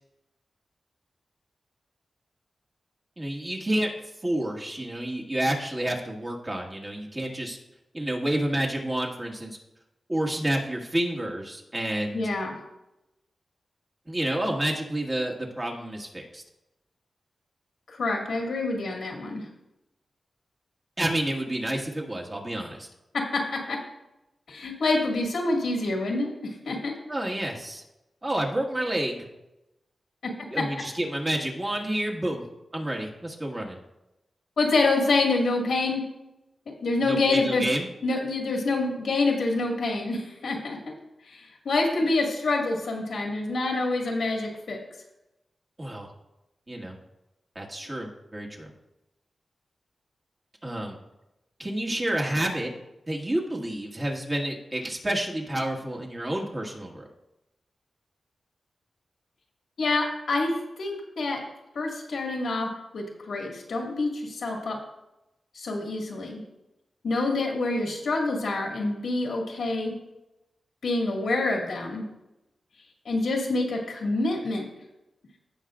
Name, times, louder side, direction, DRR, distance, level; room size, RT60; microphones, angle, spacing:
voice 1, 3.2-3.9 4.2-7.6 7.9-9.6 10.1-12.2 14.1-16.4 21.0-22.9 27.1-27.8 28.2-29.3 30.5-32.5 32.7-33.8 37.0-37.9 42.0-42.1 45.8-46.1 46.7-47.0 47.6-48.7 50.6-51.0 51.6-52.7 53.1-57.0, right 1 dB, 25° right, -1 dB, 1.7 m, -29 dB
voice 2, 12.1-12.6 17.9-19.5 23.3-23.8 24.5-27.0 34.6-36.0 36.7-37.6 38.0-40.9 41.2-44.8 59.8-61.4 61.7-62.7 62.9-64.8 65.5-66.4 67.0-69.9 70.8-72.0 73.1-74.6, left 2 dB, 85° left, 0 dB, 2.0 m, -27 dB
16.5 x 5.8 x 2.5 m, 0.93 s
wide cardioid pair, 85°, 0 cm